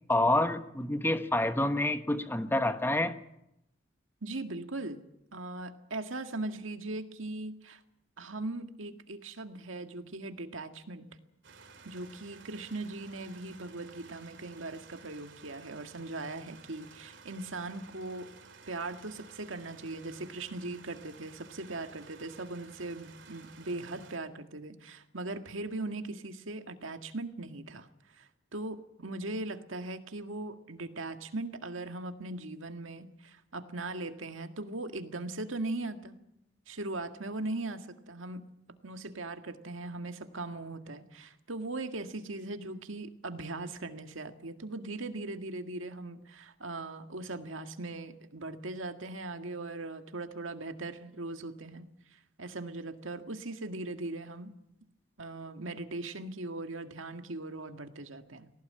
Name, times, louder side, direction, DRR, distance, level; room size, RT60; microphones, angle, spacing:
voice 1, 0.1-3.2, left 1 dB, 10° left, 1.1 m, -28 dB
voice 2, 4.2-5.0 5.3-7.8 8.2-11.2 11.8-18.3 18.7-36.2 36.7-38.4 38.8-54.5 55.2-58.5, right 2 dB, 90° right, 1.8 m, -39 dB
sound 1, 11.4-24.2, right 4 dB, 65° right, 3.4 m, -54 dB
20.0 x 18.0 x 8.8 m
head